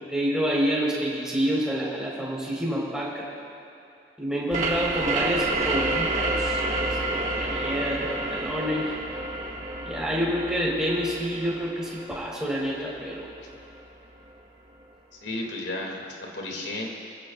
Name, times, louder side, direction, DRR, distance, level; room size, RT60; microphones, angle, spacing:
voice 1, 0.1-3.3 4.2-8.9 9.8-13.3, equal, 5° right, -5 dB, 4.1 m, -28 dB
sound 1, 4.5-13.9, right 2 dB, 40° right, 1.8 m, -30 dB
voice 2, 15.2-16.9, left 2 dB, 80° left, 0 dB, 2.4 m, -33 dB
28.0 x 16.5 x 2.4 m, 2.7 s
head